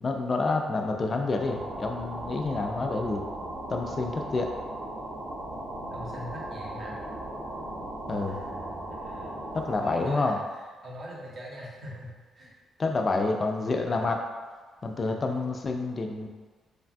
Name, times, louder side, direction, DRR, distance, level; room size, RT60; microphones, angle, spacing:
voice 1, 0.0-3.2 3.7-4.5 8.1-8.4 9.5-10.4 12.8-14.2 14.8-16.3, left 3 dB, 30° left, 3 dB, 0.3 m, -28 dB
sound 1, 1.2-10.1, right 1 dB, 85° right, 0.9 m, -37 dB
voice 2, 5.9-7.0 8.2-9.4 9.8-12.5 13.9-14.1 15.1-15.2, equal, 45° right, -4 dB, 0.7 m, -42 dB
3.2 x 2.2 x 2.5 m, 1.4 s
cardioid pair, 125°, 0 cm